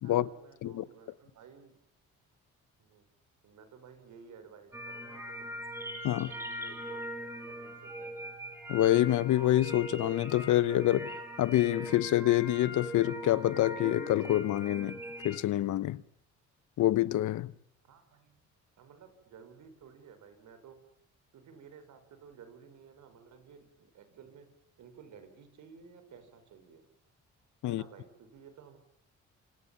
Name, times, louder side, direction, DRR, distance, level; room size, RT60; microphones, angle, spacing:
voice 1, 0.0-1.7 2.8-3.0 3.4-5.5 6.1-8.3 17.9-18.4 18.8-20.8 21.3-24.5 24.8-26.8 27.6-28.8, right 6 dB, 75° right, 5.8 m, -54 dB
sound 1, 4.7-15.4, equal, 10° right, 5.8 m, -41 dB
voice 2, 8.7-15.0 15.2-16.0 16.8-17.5 27.6-27.8, left 14 dB, 75° left, 1.1 m, -27 dB
28.0 x 26.5 x 7.3 m
cardioid pair, 90°, 30 cm